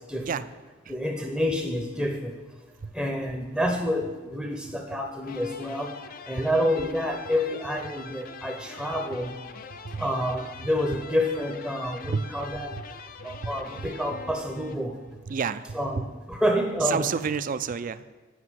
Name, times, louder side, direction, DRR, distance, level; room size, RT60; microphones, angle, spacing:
voice 1, 0.9-2.3 2.9-5.9 6.3-9.3 10.0-12.7 13.2-15.0 15.7-17.0, equal, ahead, 3 dB, 0.7 m, -28 dB
sound 1, 5.2-15.2, left 5 dB, 45° left, 0.5 m, -44 dB
voice 2, 13.2-13.9 15.3-16.0 16.8-18.0, right 6 dB, 40° right, 14 dB, 0.4 m, -31 dB
8.1 x 5.7 x 7.4 m, 1.3 s
head